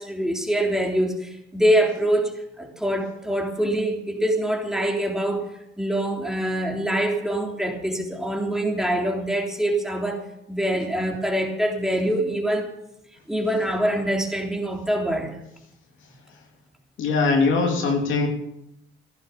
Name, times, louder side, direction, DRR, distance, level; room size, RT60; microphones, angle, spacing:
voice 1, 0.0-5.5 5.8-12.7 13.3-15.4, right 1 dB, ahead, 1 dB, 3.6 m, -24 dB
voice 2, 17.0-18.3, left 4 dB, 80° left, 3 dB, 3.2 m, -21 dB
15.5 x 11.5 x 7.0 m, 0.82 s
cardioid pair, 90°, 20 cm